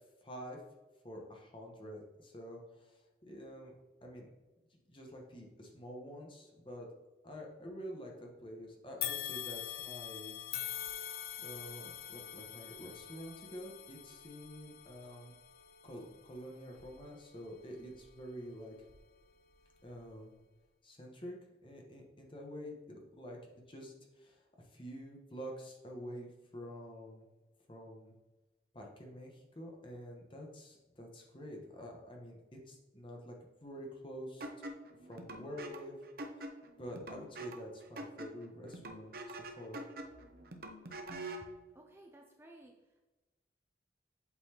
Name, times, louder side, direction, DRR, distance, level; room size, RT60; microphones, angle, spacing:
voice 1, 0.2-0.6 1.0-3.0 3.3-3.7 4.0-4.3 4.9-6.9 7.2-10.4 10.9-11.1 11.4-15.3 15.8-18.7 19.8-20.3 20.8-21.4 21.6-23.4 23.7-27.2 27.7-28.1 28.7-32.4 32.7-33.3 33.6-34.5 35.0-36.0 36.8-39.8, equal, 30° left, 0 dB, 1.1 m, -48 dB
sound 1, 9.0-18.3 18.8-19.0 20.0-20.1, left 11 dB, 55° left, 0.4 m, -44 dB
sound 2, 34.4-41.5, right 1 dB, 55° right, 0.7 m, -46 dB
voice 2, 41.7-43.0, right 1 dB, 15° right, 1 dB, 0.4 m, -57 dB
8.0 x 4.1 x 2.9 m, 1.1 s
head